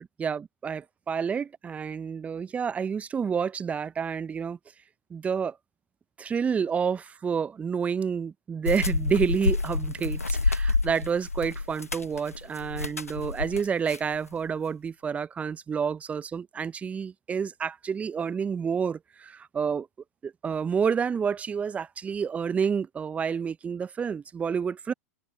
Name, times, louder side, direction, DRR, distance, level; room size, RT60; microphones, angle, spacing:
voice 1, 0.0-4.6 5.1-5.6 6.2-19.9 20.2-24.9, right 6 dB, 15° right, 0.8 m, -29 dB
sound 1, 8.7-14.2, left 3 dB, 85° left, 1.1 m, -28 dB
figure-of-eight pair, 95°, 8 cm